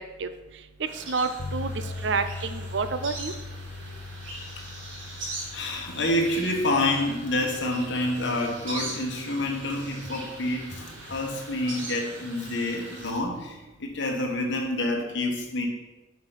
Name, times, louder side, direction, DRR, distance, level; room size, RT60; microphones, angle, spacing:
voice 1, 0.8-1.7 2.0-3.3, right 4 dB, 65° right, 10 dB, 0.5 m, -29 dB
sound 1, 0.9-13.1, right 2 dB, 85° right, 2.0 m, -41 dB
sound 2, 1.4-11.5, left 2 dB, 50° left, 0.4 m, -41 dB
voice 2, 5.5-15.7, left 1 dB, 65° left, 0 dB, 1.3 m, -28 dB
6.0 x 4.8 x 5.9 m, 1.1 s
head